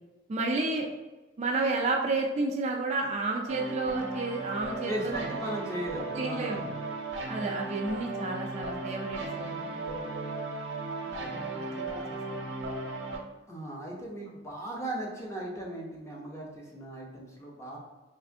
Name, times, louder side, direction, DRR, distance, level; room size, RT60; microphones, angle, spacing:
voice 1, 0.3-0.9 1.4-5.1 6.1-6.6 7.3-10.1 11.0-12.5, right 3 dB, 35° right, 0 dB, 0.3 m, -32 dB
sound 1, 3.5-13.2, right 2 dB, 80° right, 0.6 m, -36 dB
voice 2, 4.9-6.6 13.5-17.8, right 1 dB, 15° left, -2 dB, 0.6 m, -37 dB
3.3 x 2.5 x 2.5 m, 1.2 s
head